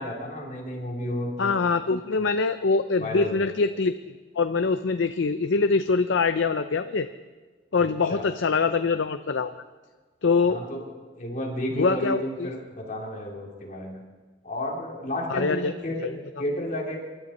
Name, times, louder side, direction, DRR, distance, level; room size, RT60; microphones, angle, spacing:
voice 1, 0.0-1.9 2.2-2.3 3.0-3.5 7.8-8.3 10.5-10.9 11.1-14.0 14.4-16.0 16.4-17.0, left 1 dB, 40° left, -1 dB, 2.7 m, -32 dB
voice 2, 1.4-3.9 4.4-7.1 7.7-9.5 10.2-10.6 11.8-12.5 15.3-15.7 16.0-16.2, left 4 dB, 85° left, 9 dB, 0.6 m, -24 dB
26.0 x 12.5 x 4.3 m, 1.4 s
head